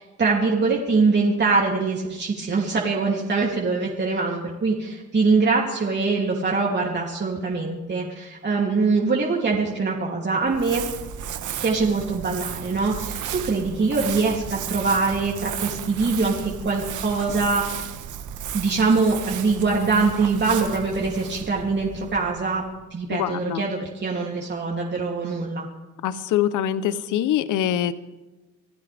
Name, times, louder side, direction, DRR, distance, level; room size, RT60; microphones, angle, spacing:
voice 1, 0.0-10.8 11.6-17.9 18.5-22.6 22.9-25.7, right 4 dB, 35° right, -2 dB, 3.0 m, -23 dB
Crumpling crinkling, 10.4-22.9, right 9 dB, 75° right, 1.4 m, -34 dB
voice 2, 23.1-23.6 26.0-27.9, left 11 dB, 80° left, 13 dB, 0.9 m, -24 dB
26.5 x 15.5 x 3.5 m, 1.1 s
cardioid pair, 90°, 30 cm